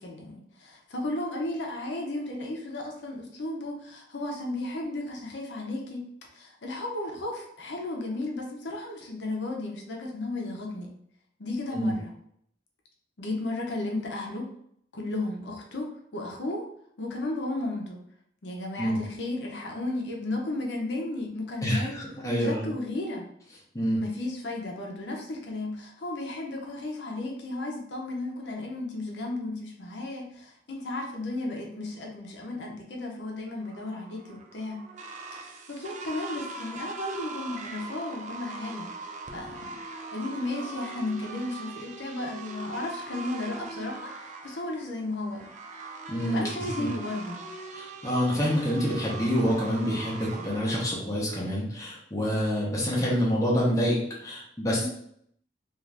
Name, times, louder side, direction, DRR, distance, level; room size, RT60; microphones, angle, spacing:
voice 1, 0.0-10.9 11.4-12.1 13.2-14.5 14.9-16.7 17.0-18.0 18.4-22.0 22.4-23.3 23.9-34.8 35.4-38.9 39.3-45.5 46.2-47.5 54.8-54.9, left 2 dB, 70° left, 0 dB, 0.6 m, -34 dB
voice 2, 21.6-22.7 23.7-24.0 46.1-46.5 47.7-54.9, equal, 20° left, -5 dB, 0.7 m, -27 dB
sound 1, 33.6-50.8, right 3 dB, 40° right, 0.3 m, -41 dB
2.5 x 2.5 x 3.2 m, 0.68 s
head